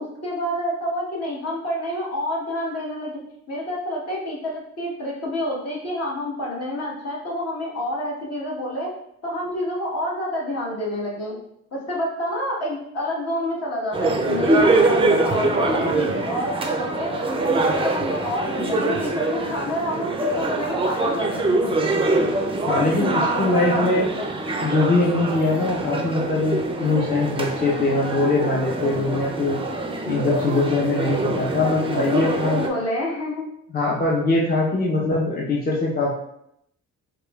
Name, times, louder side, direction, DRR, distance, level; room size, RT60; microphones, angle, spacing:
voice 1, 0.0-3.2 3.5-8.9 9.2-11.4 11.7-17.1 17.4-21.7 23.0-24.3 31.5-33.5, equal, 55° left, -4 dB, 1.3 m, -28 dB
sound 1, 13.9-32.7, right 2 dB, 20° right, 0.4 m, -24 dB
voice 2, 22.7-24.1 24.6-29.6 30.0-32.6 33.7-36.1, left 2 dB, 30° left, -4 dB, 0.6 m, -22 dB
4.8 x 2.3 x 2.3 m, 0.75 s
cardioid pair, 90°, 30 cm